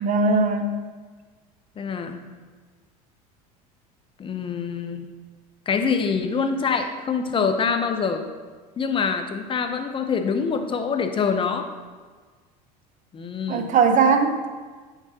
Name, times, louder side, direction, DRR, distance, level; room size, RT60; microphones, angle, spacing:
voice 1, 0.0-0.8 13.5-14.5, right 4 dB, 40° right, 7 dB, 0.7 m, -20 dB
voice 2, 1.8-2.2 4.2-5.1 5.7-8.2 8.8-11.7 13.1-13.7, left 5 dB, 25° left, 7 dB, 0.7 m, -25 dB
7.8 x 6.0 x 2.8 m, 1.4 s
supercardioid pair, 95°, 19 cm